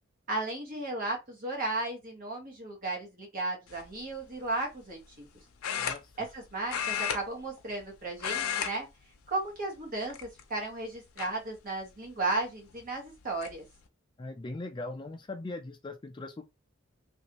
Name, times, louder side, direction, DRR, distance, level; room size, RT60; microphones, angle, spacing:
voice 1, 0.3-5.3 6.2-8.9 9.3-13.6, right 2 dB, 40° right, 1.4 m, -35 dB
sound 1, 3.7-4.0 5.6-6.4 6.7-7.9 8.1-8.7 9.0-9.3 10.1-10.6 11.2-11.3 12.7-12.8 13.1-13.5, left 8 dB, 80° left, 0.6 m, -33 dB
voice 2, 14.2-16.5, left 2 dB, 20° left, 0.3 m, -40 dB
3.1 x 2.7 x 2.9 m
head